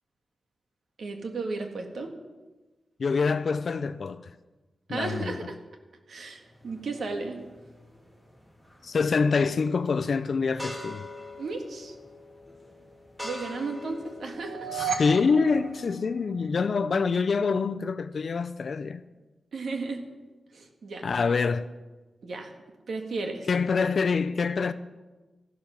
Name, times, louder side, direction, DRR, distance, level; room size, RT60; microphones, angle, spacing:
voice 1, 1.0-2.1 4.9-5.6 6.1-7.4 11.4-12.0 13.2-14.7 19.5-20.1 20.5-21.0 22.2-22.5 22.9-23.5, right 3 dB, 70° right, 1.8 m, -34 dB
voice 2, 3.0-4.3 4.9-5.4 8.8-11.0 14.7-19.0 21.0-21.7 23.5-24.7, left 5 dB, 55° left, 0.5 m, -26 dB
sound 1, 6.5-15.7, left 1 dB, 10° right, 2.9 m, -44 dB
sound 2, 14.3-16.6, right 5 dB, 45° right, 1.7 m, -34 dB
14.0 x 12.0 x 6.0 m
wide cardioid pair, 170°, 0 cm